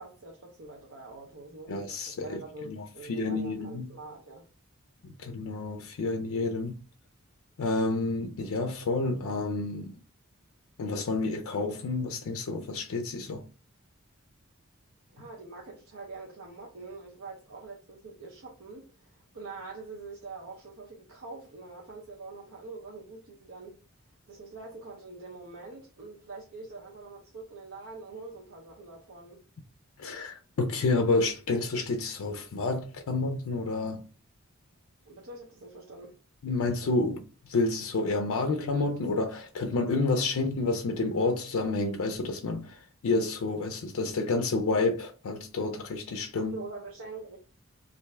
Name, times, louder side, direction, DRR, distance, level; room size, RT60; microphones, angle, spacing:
voice 1, 0.0-1.8 2.2-4.5 15.1-23.8 24.3-29.4 35.0-36.2 46.3-47.4, right 3 dB, 65° right, 0.6 m, -44 dB
voice 2, 1.7-2.4 2.7-3.9 5.0-6.8 7.6-10.0 10.8-13.4 30.0-34.0 36.4-46.6, left 3 dB, 70° left, 0.4 m, -29 dB
3.3 x 2.5 x 3.2 m
head